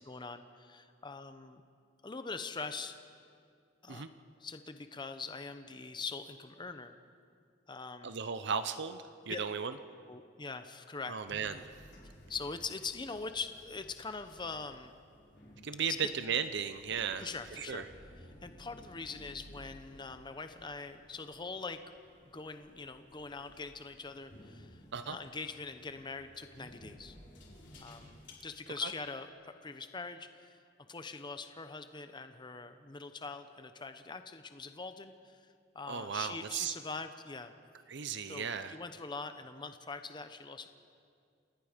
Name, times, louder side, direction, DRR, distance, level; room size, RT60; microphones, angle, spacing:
voice 1, 0.1-1.6 2.0-3.0 3.8-4.0 4.4-6.9 7.7-8.2 9.3-9.4 10.1-11.1 12.3-14.9 17.2-17.8 18.4-21.8 22.3-27.2 27.8-30.6 30.9-37.5 38.3-40.7, left 4 dB, 25° left, 9 dB, 0.8 m, -43 dB
voice 2, 8.0-9.7 11.1-11.6 15.6-17.8 24.9-25.2 28.8-28.9 35.9-36.7 37.9-38.8, right 7 dB, 65° right, 11 dB, 0.7 m, -36 dB
sound 1, 11.3-28.3, equal, 65° left, 4.6 m, -56 dB
29.0 x 17.5 x 5.1 m, 2.3 s
head